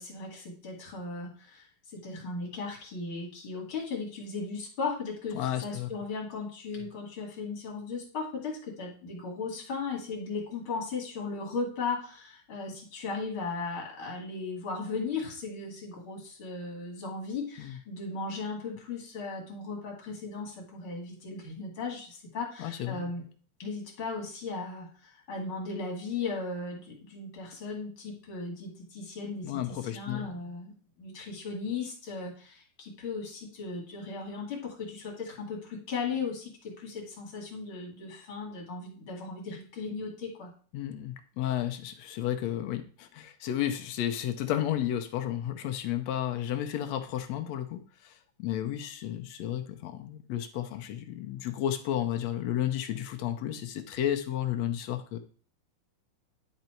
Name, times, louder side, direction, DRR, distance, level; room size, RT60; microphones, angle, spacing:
voice 1, 0.0-1.6 1.9-23.2 23.6-30.7 31.0-40.5, left 4 dB, 45° left, -1 dB, 2.9 m, -37 dB
voice 2, 5.3-5.9 17.6-17.8 22.6-23.1 29.4-30.5 40.7-55.2, left 11 dB, 75° left, 7 dB, 1.8 m, -32 dB
10.5 x 4.0 x 4.4 m, 0.42 s
omnidirectional pair, 3.5 m